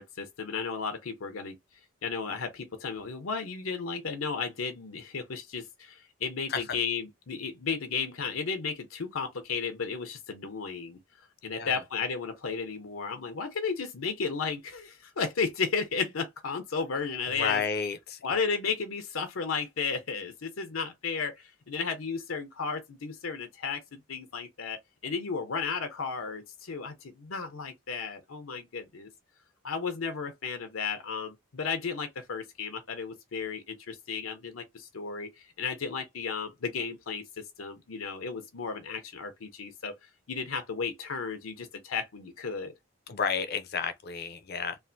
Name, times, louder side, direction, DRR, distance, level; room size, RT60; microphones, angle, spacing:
voice 1, 0.0-1.6 2.0-11.0 11.4-17.6 18.2-23.8 24.1-29.1 29.6-37.2 37.6-39.9 40.3-42.7, left 5 dB, 90° left, 0.8 m, -34 dB
voice 2, 11.5-11.8 17.3-18.2 43.1-44.8, left 6 dB, 50° left, 0.5 m, -32 dB
3.2 x 2.5 x 2.6 m
head